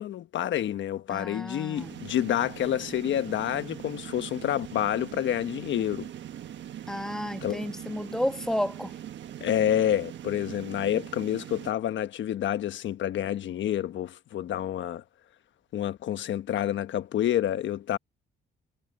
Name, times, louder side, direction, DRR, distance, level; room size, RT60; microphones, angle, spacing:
voice 1, 0.0-6.1 7.4-7.7 9.4-15.0 15.7-18.0, left 11 dB, 70° left, 1.2 m, -28 dB
voice 2, 1.1-1.9 6.9-8.9, equal, 5° left, 1.4 m, -31 dB
sound 1, 1.7-11.7, right 11 dB, 65° right, 1.3 m, -41 dB
cardioid pair, 90°, 20 cm